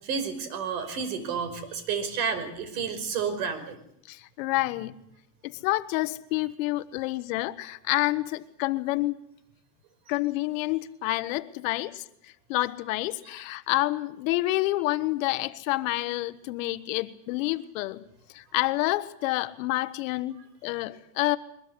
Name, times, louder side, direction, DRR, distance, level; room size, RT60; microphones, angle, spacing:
voice 1, 0.0-3.8, right 6 dB, 60° right, 10 dB, 5.4 m, -31 dB
voice 2, 4.1-5.0 5.4-9.1 10.1-18.0 18.3-21.4, left 18 dB, 55° left, 12 dB, 1.1 m, -28 dB
22.5 x 21.0 x 8.3 m, 0.74 s
supercardioid pair, 160°, 49 cm